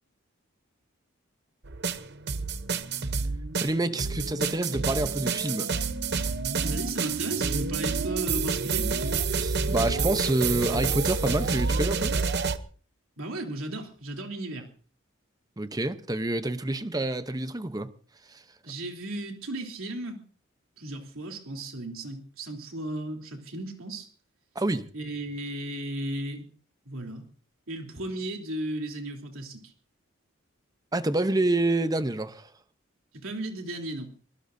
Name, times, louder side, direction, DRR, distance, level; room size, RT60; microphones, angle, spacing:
sound 1, 1.6-12.6, right 4 dB, 50° right, 0.9 m, -28 dB
voice 1, 3.5-5.7 9.4-12.1 15.6-17.9 18.3-18.4 24.5-24.9 30.9-32.5, right 2 dB, 20° right, 0.8 m, -27 dB
voice 2, 6.6-8.9 13.2-14.7 18.6-20.2 20.8-24.1 24.9-26.5 26.8-27.2 27.7-29.7 33.1-34.1, right 1 dB, 80° right, 3.3 m, -35 dB
24.5 x 18.5 x 2.7 m
head